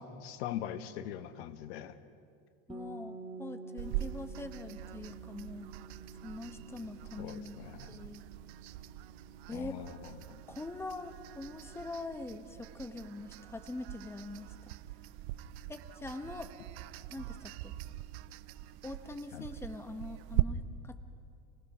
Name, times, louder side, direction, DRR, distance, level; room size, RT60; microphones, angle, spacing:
voice 1, 0.0-2.0 7.2-8.0 9.5-10.1 19.3-19.4, left 10 dB, 80° left, 11 dB, 1.3 m, -41 dB
voice 2, 2.7-5.7 6.2-7.6 7.9-8.2 9.5-9.8 10.5-14.7 15.7-16.5 17.1-17.7 18.8-21.0, left 2 dB, 10° left, 8 dB, 1.1 m, -43 dB
sound 1, 2.7-12.4, right 3 dB, 15° right, 1.8 m, -51 dB
sound 2, 3.8-20.4, right 17 dB, 80° right, 0.8 m, -42 dB
28.0 x 19.0 x 6.1 m, 2.4 s
supercardioid pair, 125°, 32 cm